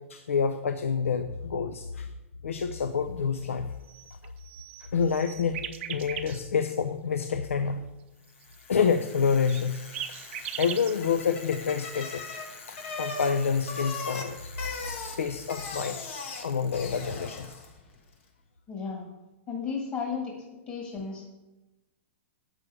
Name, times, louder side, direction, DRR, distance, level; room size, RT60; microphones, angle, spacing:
voice 1, 0.0-2.1 2.4-3.7 4.9-7.9 8.7-10.1 10.6-12.3 12.7-14.5 15.2-16.0 16.4-17.6, left 6 dB, 85° left, 9 dB, 0.5 m, -28 dB
sound 1, 3.8-6.4 9.5-10.9, right 10 dB, 60° right, 0.6 m, -38 dB
Bicycle, 8.4-17.8, left 4 dB, 70° left, 1.5 m, -40 dB
voice 2, 18.7-19.0 19.5-20.3 20.7-21.2, left 5 dB, 30° left, 0 dB, 1.8 m, -33 dB
7.8 x 6.2 x 4.7 m, 1.0 s
hypercardioid pair, 120°, 7 cm